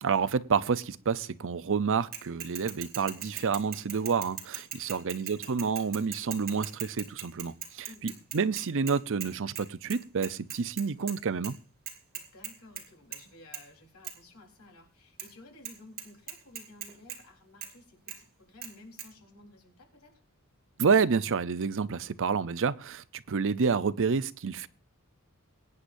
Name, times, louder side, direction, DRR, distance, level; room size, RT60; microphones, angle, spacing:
voice 1, 0.0-11.6 20.8-24.7, right 5 dB, 60° right, 0.6 m, -29 dB
Bicycle / Mechanisms, 2.1-9.3 9.6-9.7 9.9-11.2 11.4-11.5 11.9-12.8 13.1-13.3 13.5-13.6 14.0-14.1 15.2-15.3 15.6-15.7 16.0-17.2 17.6-17.7 18.1-18.2 18.6-18.7 19.0-19.1, right 9 dB, 45° right, 2.5 m, -39 dB
voice 2, 4.8-5.5 7.9-8.2 12.1-20.1, left 2 dB, 85° left, 3.9 m, -54 dB
23.0 x 9.8 x 2.6 m
head